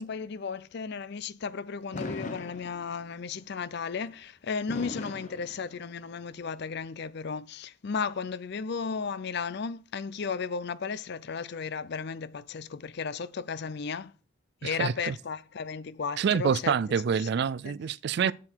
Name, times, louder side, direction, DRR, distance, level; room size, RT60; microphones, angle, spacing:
voice 1, 0.0-14.1 14.6-16.8 17.2-17.3 17.6-17.8 18.2-18.3, left 5 dB, 55° left, 0.5 m, -34 dB
Fireworks, 1.9-3.2 4.7-6.2, left 2 dB, 35° left, 0.9 m, -39 dB
voice 2, 14.6-15.1 16.2-18.3, right 7 dB, 55° right, 0.3 m, -27 dB
7.8 x 7.7 x 4.5 m
head